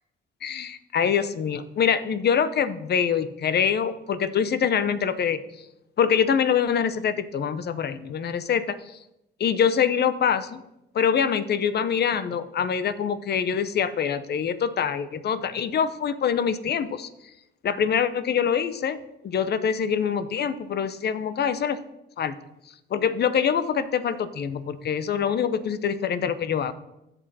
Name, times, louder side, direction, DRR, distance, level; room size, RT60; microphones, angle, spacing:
voice 1, 0.4-5.4 6.0-9.0 9.4-10.6 10.9-17.1 17.6-21.8 22.2-22.3 22.9-26.7, left 7 dB, 55° left, 13 dB, 0.8 m, -25 dB
16.0 x 5.5 x 4.2 m, 0.90 s
cardioid pair, 90°, 20 cm